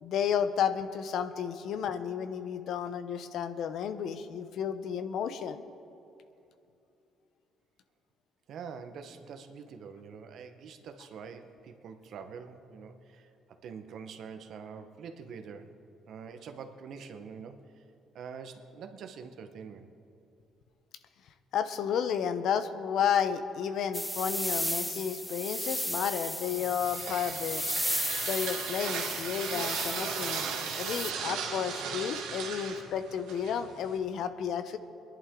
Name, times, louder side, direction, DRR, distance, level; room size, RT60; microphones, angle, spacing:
voice 1, 0.0-5.6 21.5-27.6 28.3-34.8, left 8 dB, 70° left, 10 dB, 0.8 m, -32 dB
voice 2, 8.5-13.3 13.6-15.8 16.1-17.8 18.1-19.9, right 6 dB, 65° right, 7 dB, 1.1 m, -45 dB
sound 1, 23.9-31.1, equal, ahead, 0.6 m, -35 dB
sound 2, 26.5-34.0, right 6 dB, 85° right, 1.5 m, -37 dB
22.0 x 11.0 x 3.8 m, 2.8 s
cardioid pair, 80°, 0 cm